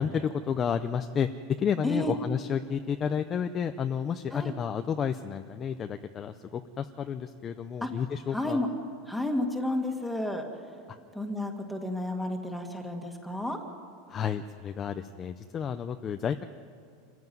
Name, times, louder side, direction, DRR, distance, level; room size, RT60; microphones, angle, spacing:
voice 1, 0.0-8.6 10.9-11.0 14.1-16.4, left 7 dB, 20° left, 8 dB, 0.5 m, -31 dB
voice 2, 1.8-2.2 4.3-4.5 7.8-7.9 8.3-8.7 9.1-10.4 11.1-13.6, left 1 dB, ahead, 2 dB, 1.8 m, -31 dB
26.5 x 15.5 x 9.3 m, 2.5 s
supercardioid pair, 175°, 0 cm